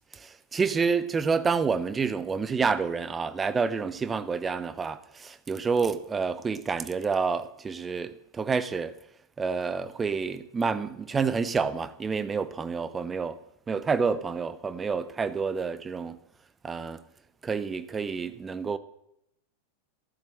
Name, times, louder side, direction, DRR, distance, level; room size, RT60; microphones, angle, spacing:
voice 1, 0.2-8.9 9.4-13.4 13.7-16.2 16.6-17.0 17.4-18.8, right 5 dB, 15° right, 1.0 m, -28 dB
14.5 x 12.0 x 7.7 m
figure-of-eight pair, 90°, 0 cm